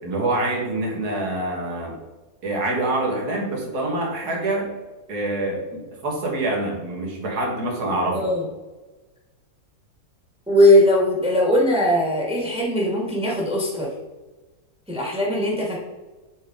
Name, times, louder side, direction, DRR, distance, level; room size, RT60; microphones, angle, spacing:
voice 1, 0.0-2.0 2.4-4.7 5.1-8.3, right 2 dB, 90° right, -1 dB, 2.0 m, -26 dB
voice 2, 10.5-13.9 14.9-15.8, left 1 dB, 5° right, -4 dB, 1.4 m, -19 dB
7.5 x 3.9 x 3.6 m, 1.2 s
omnidirectional pair, 1.6 m